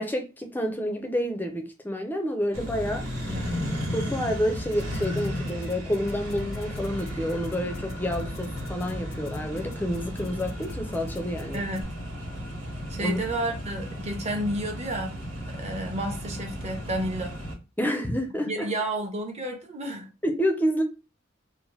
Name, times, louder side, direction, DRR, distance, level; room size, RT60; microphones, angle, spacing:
voice 1, 0.0-3.1 3.9-11.6 13.0-13.2 17.8-18.7 20.2-20.8, equal, 10° left, 0.4 m, -29 dB
Accelerating revving vroom, 2.5-17.5, equal, 85° right, 1.3 m, -34 dB
voice 2, 3.2-3.7 11.5-11.9 12.9-15.1 15.5-17.4 18.5-20.1, right 1 dB, 30° right, 0.7 m, -31 dB
sound 1, 4.6-11.8, left 2 dB, 80° left, 0.4 m, -42 dB
2.8 x 2.1 x 3.0 m
head